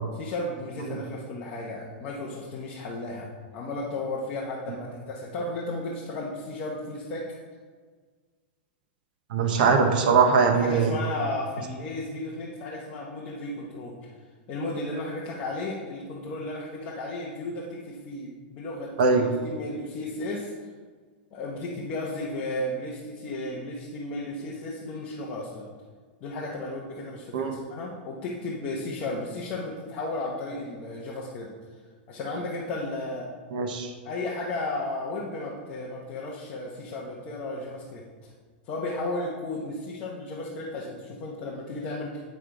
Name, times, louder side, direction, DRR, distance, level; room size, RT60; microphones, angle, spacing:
voice 1, 0.1-3.3 3.5-7.3 10.5-14.1 14.5-20.5 21.3-25.6 26.2-31.5 32.1-33.3 34.0-38.3 38.6-42.2, left 2 dB, 25° left, -4 dB, 0.8 m, -34 dB
voice 2, 9.3-11.0 19.0-19.2 27.3-27.5 33.5-33.9, right 5 dB, 50° right, 4 dB, 0.8 m, -21 dB
8.1 x 6.5 x 3.7 m, 1.5 s
supercardioid pair, 180°, 6 cm